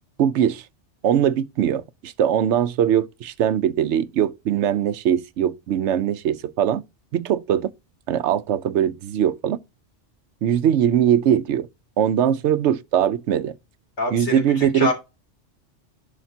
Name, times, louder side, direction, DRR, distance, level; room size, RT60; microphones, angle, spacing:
voice 1, 0.2-0.6 1.0-6.8 7.1-7.7 8.1-9.6 10.4-11.7 12.0-13.5 14.1-14.9, right 9 dB, 80° right, 0.9 m, -21 dB
voice 2, 14.0-14.9, left 2 dB, 75° left, 3.3 m, -25 dB
11.5 x 5.0 x 2.7 m
omnidirectional pair, 1.2 m